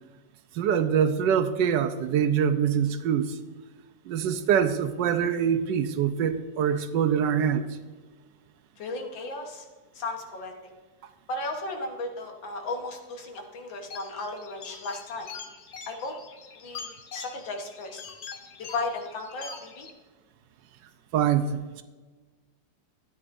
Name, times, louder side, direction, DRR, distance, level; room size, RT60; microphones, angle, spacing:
voice 1, 0.5-3.4 4.1-7.7 21.1-21.8, right 8 dB, 80° right, 9 dB, 1.2 m, -24 dB
voice 2, 8.8-9.7 10.0-10.5 11.3-15.3 15.9-16.1 16.6-18.0 18.6-19.9, left 2 dB, 85° left, 3 dB, 2.0 m, -35 dB
sound 1, 13.9-19.9, left 6 dB, 60° left, 1.2 m, -44 dB
13.0 x 8.9 x 2.6 m, 1.3 s
omnidirectional pair, 2.0 m